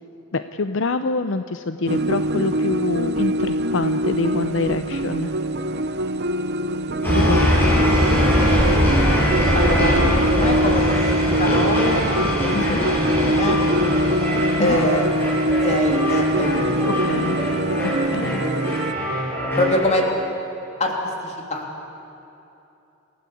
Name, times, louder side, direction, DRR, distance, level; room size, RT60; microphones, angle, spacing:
voice 1, 0.3-5.3 7.1-7.6 8.5-8.7 10.0-10.1 12.5-12.8 14.6-14.8 17.1-17.4 18.1-18.4, left 3 dB, 65° left, 10 dB, 0.6 m, -26 dB
sound 1, 1.9-18.9, right 1 dB, 55° right, 0.8 m, -23 dB
sound 2, 7.0-19.9, equal, 10° left, 6.7 m, -22 dB
voice 2, 9.5-13.6 14.6-15.1 15.5-17.2 19.6-20.1 20.8-20.9 21.2-21.6, left 1 dB, 35° left, 0 dB, 3.2 m, -24 dB
28.0 x 16.5 x 8.4 m, 2.8 s
head